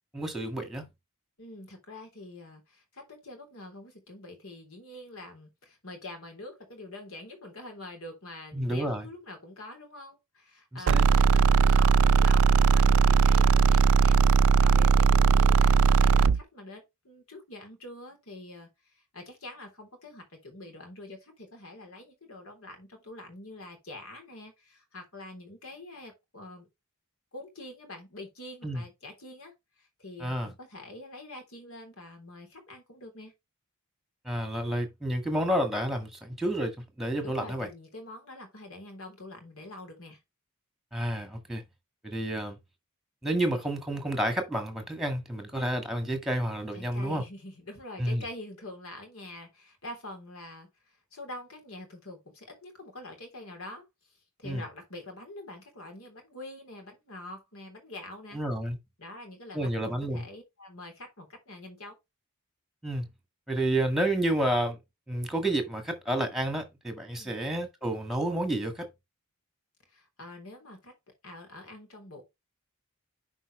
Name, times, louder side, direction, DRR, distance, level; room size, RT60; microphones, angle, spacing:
voice 1, 0.1-0.9 8.5-9.1 10.7-11.1 28.6-28.8 30.2-30.5 34.3-37.7 40.9-41.6 42.0-42.6 43.2-47.2 48.0-48.2 54.4-54.6 58.3-58.8 59.5-60.2 62.8-63.1 63.5-64.8 65.1-68.9, right 1 dB, ahead, 1.8 m, -30 dB
voice 2, 1.4-26.7 27.3-33.3 37.2-40.2 46.7-53.8 54.4-58.4 59.0-62.0 67.1-67.4 69.9-70.9 71.2-72.2, left 1 dB, 65° left, 3.4 m, -45 dB
sound 1, 10.9-16.4, right 5 dB, 65° right, 0.4 m, -19 dB
10.0 x 4.6 x 3.2 m
head